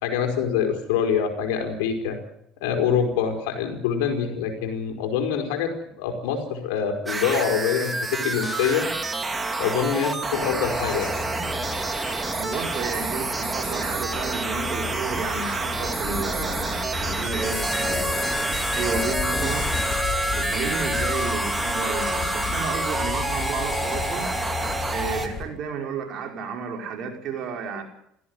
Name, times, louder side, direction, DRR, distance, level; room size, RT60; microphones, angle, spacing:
voice 1, 0.0-2.2 2.6-5.7 6.0-8.8 9.6-11.3, left 7 dB, 80° left, 4 dB, 5.0 m, -25 dB
sound 1, 7.1-25.3, right 3 dB, 20° right, 2.8 m, -29 dB
Bird / Insect / Wind, 10.4-25.4, left 6 dB, 50° left, 7.3 m, -35 dB
voice 2, 12.3-19.7 20.3-24.3 24.9-27.8, right 6 dB, 55° right, 2 dB, 5.2 m, -32 dB
Harmonica, 17.4-25.4, left 2 dB, 10° left, 2.1 m, -30 dB
17.5 x 15.5 x 9.8 m, 0.74 s
hypercardioid pair, 75°, 0 cm